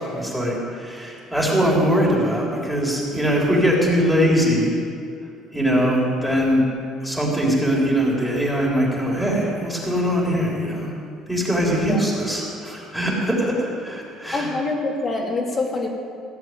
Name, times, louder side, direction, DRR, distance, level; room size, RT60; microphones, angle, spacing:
voice 1, 0.2-4.8 5.5-6.6 7.0-10.9 11.3-14.5, equal, ahead, -4 dB, 3.5 m, -21 dB
voice 2, 11.7-12.0 14.3-15.9, left 3 dB, 30° left, 0 dB, 2.4 m, -26 dB
16.0 x 7.1 x 9.2 m, 2.4 s
cardioid pair, 135°, 0 cm